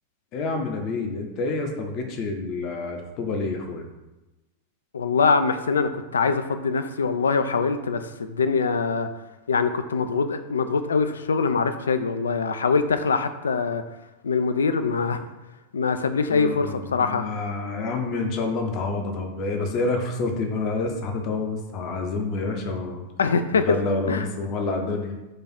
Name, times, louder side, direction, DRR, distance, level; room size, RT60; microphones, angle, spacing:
voice 1, 0.3-3.9 16.3-23.1 23.5-25.1, left 3 dB, 40° left, 4 dB, 0.7 m, -28 dB
voice 2, 4.9-9.1 9.5-13.8 14.2-15.3 15.7-17.3 23.2-23.8 24.1-24.3, left 5 dB, 70° left, 9 dB, 0.3 m, -23 dB
4.8 x 2.4 x 4.2 m, 1.0 s
figure-of-eight pair, 90°, 0 cm